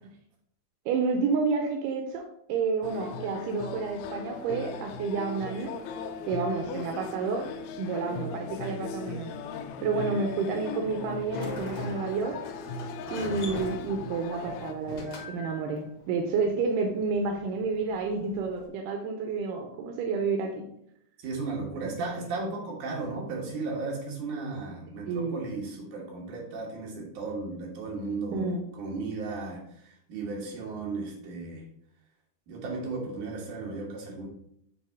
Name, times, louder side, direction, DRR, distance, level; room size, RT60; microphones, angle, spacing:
voice 1, 0.9-2.2 2.5-5.7 6.2-7.5 7.8-9.3 9.8-12.3 13.1-20.7 22.0-22.3 25.1-25.4 28.3-28.6, right 4 dB, 90° right, 3 dB, 2.3 m, -30 dB
sound 1, 2.8-14.7, left 4 dB, 85° left, 2.2 m, -38 dB
Sliding door, 11.1-18.7, left 1 dB, 60° left, 1.2 m, -43 dB
voice 2, 21.2-28.5 28.7-31.6 32.5-34.3, right 3 dB, 70° right, -2 dB, 2.9 m, -35 dB
7.7 x 2.8 x 4.6 m, 0.73 s
omnidirectional pair, 3.7 m